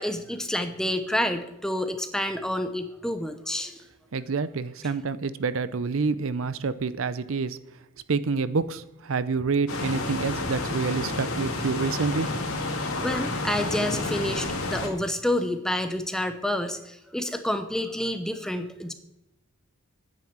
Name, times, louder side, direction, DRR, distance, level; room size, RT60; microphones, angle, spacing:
voice 1, 0.0-3.8 13.0-18.9, left 1 dB, 5° left, 7 dB, 0.9 m, -29 dB
voice 2, 4.1-7.6 8.1-12.3, right 4 dB, 75° right, 15 dB, 0.6 m, -27 dB
sound 1, 9.7-14.9, left 2 dB, 90° left, 2.1 m, -30 dB
9.4 x 7.7 x 8.8 m, 0.89 s
head